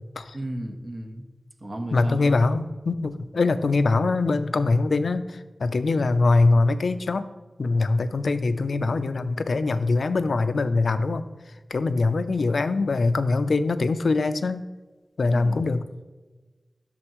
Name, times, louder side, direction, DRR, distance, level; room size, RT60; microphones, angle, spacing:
voice 1, 0.3-1.2 1.6-2.7 15.3-15.6, right 1 dB, 50° right, 3 dB, 1.2 m, -34 dB
voice 2, 1.9-7.3 7.6-11.2 11.7-14.7 15.2-15.8, left 3 dB, 85° left, 11 dB, 0.4 m, -23 dB
11.0 x 6.9 x 3.0 m, 1.2 s
wide cardioid pair, 60°, 0 cm